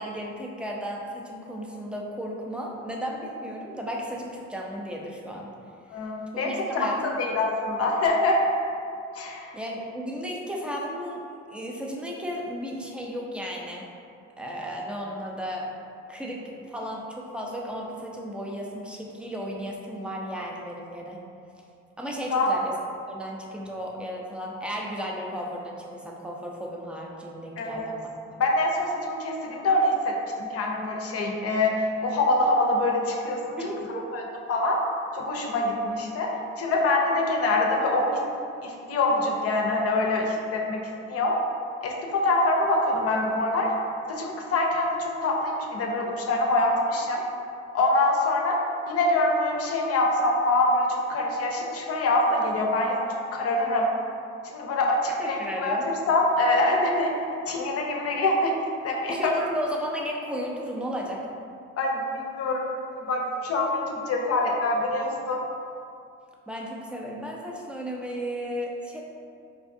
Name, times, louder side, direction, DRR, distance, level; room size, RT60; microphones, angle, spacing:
voice 1, 0.0-5.5 6.3-7.1 9.5-11.2 11.5-13.9 14.4-15.7 16.1-21.2 22.0-22.8 23.1-28.1 33.6-34.1 55.2-55.8 59.1-61.3 66.5-69.0, equal, 5° right, -2 dB, 0.4 m, -34 dB
voice 2, 5.9-8.4 9.1-9.6 22.3-22.5 27.6-27.9 28.4-33.6 33.9-34.2 34.5-34.8 35.1-36.3 36.6-38.0 38.6-41.4 41.8-43.7 44.1-47.2 47.7-48.6 48.9-53.0 53.3-53.9 54.4-57.1 57.5-58.5 58.8-59.3 61.8-62.7 63.0-65.4, left 2 dB, 50° left, 0 dB, 0.6 m, -25 dB
4.3 x 2.3 x 2.6 m, 2.5 s
cardioid pair, 90°, 30 cm